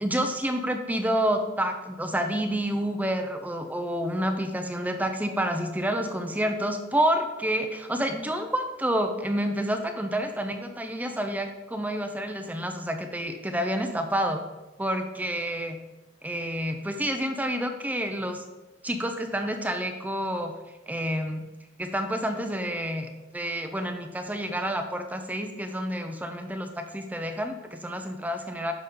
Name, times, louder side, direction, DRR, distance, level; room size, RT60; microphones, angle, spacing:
voice 1, 0.0-14.4 14.8-15.8 16.2-18.4 18.8-20.5 20.9-21.5 21.8-28.7, equal, 10° right, 5 dB, 0.7 m, -29 dB
10.5 x 6.2 x 3.9 m, 1.1 s
head